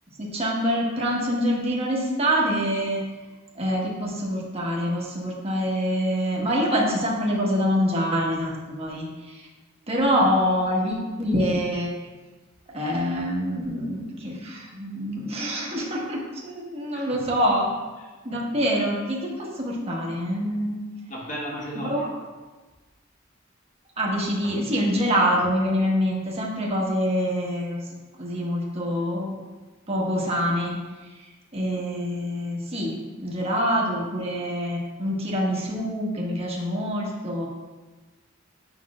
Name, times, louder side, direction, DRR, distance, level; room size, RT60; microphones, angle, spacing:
voice 1, 0.2-3.0 3.5-9.4 9.9-12.0 12.7-17.7 18.2-20.8 21.8-22.1 24.0-29.4 29.9-30.8 31.1-31.2 31.5-37.5, equal, 30° right, -3 dB, 1.2 m, -25 dB
voice 2, 16.9-17.3 18.0-18.2 21.1-22.1 33.4-33.6, equal, 40° left, -4 dB, 1.5 m, -35 dB
8.4 x 5.5 x 2.4 m, 1.2 s
head